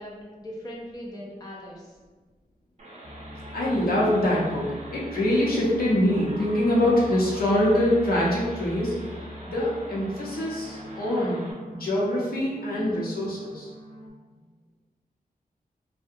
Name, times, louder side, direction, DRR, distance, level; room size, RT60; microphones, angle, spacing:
voice 1, 0.0-1.9, equal, 25° left, -4 dB, 0.4 m, -40 dB
sound 1, 2.8-11.5, right 1 dB, 45° right, 0.5 m, -45 dB
sound 2, 3.0-14.1, left 1 dB, 50° left, 0.9 m, -43 dB
voice 2, 3.5-8.9 9.4-11.4 11.7-13.7, left 1 dB, 75° left, -6 dB, 0.8 m, -24 dB
2.6 x 2.1 x 2.5 m, 1.3 s
wide cardioid pair, 110°, 15 cm